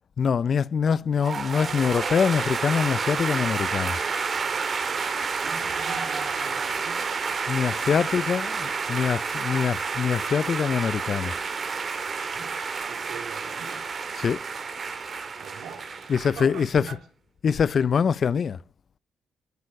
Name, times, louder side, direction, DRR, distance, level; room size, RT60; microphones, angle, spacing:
voice 1, 0.2-4.0 7.5-11.3 14.2-14.4 16.1-16.8 17.4-18.6, left 6 dB, 55° left, 0.6 m, -24 dB
sound 1, 1.2-16.7, right 5 dB, 50° right, 2.6 m, -30 dB
voice 2, 5.4-7.1 7.4-8.2 12.2-13.9 15.4-17.0, right 6 dB, 80° right, 3.4 m, -43 dB
13.5 x 9.6 x 7.8 m
supercardioid pair, 60°, 0 cm